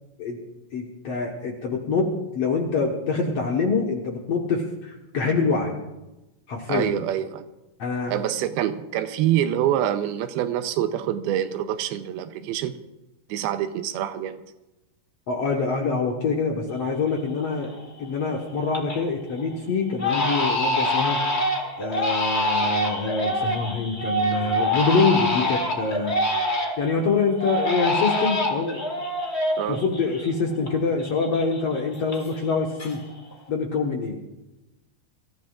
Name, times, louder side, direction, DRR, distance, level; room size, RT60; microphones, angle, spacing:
voice 1, 0.7-5.8 6.5-6.9 7.8-8.1 15.3-17.7 18.0-21.2 21.8-26.1 26.8-28.8 29.7-33.0 33.5-34.2, left 4 dB, 60° left, 0 dB, 1.8 m, -25 dB
voice 2, 6.7-7.5 8.1-12.8 13.3-14.4 29.6-29.8, right 11 dB, 85° right, 10 dB, 2.5 m, -26 dB
Crying sobbing, 16.8-16.9 17.4-17.8 18.2-19.1 19.4-19.5 20.0-26.9 27.4-30.7 31.0-32.5 32.8-33.3, left 1 dB, 40° left, 0.9 m, -25 dB
25.5 x 14.0 x 2.5 m, 0.99 s
omnidirectional pair, 4.4 m